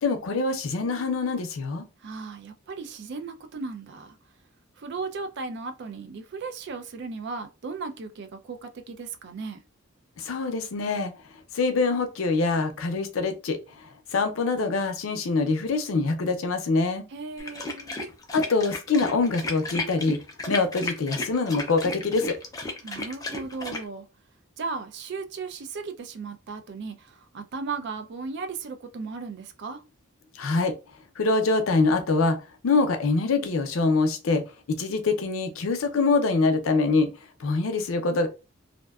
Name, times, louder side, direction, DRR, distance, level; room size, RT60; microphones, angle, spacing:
voice 1, 0.0-1.8 10.2-11.1 11.5-17.0 18.3-20.2 20.5-22.4 30.3-30.7 31.2-34.4 34.7-37.1 37.4-38.3, left 3 dB, 85° left, 0.5 m, -24 dB
voice 2, 2.0-4.2 4.8-9.6 17.1-18.0 22.8-24.1 24.6-29.8, right 4 dB, 60° right, 0.4 m, -36 dB
sound 1, 17.4-23.8, left 2 dB, 20° left, 0.4 m, -34 dB
2.5 x 2.1 x 2.3 m
head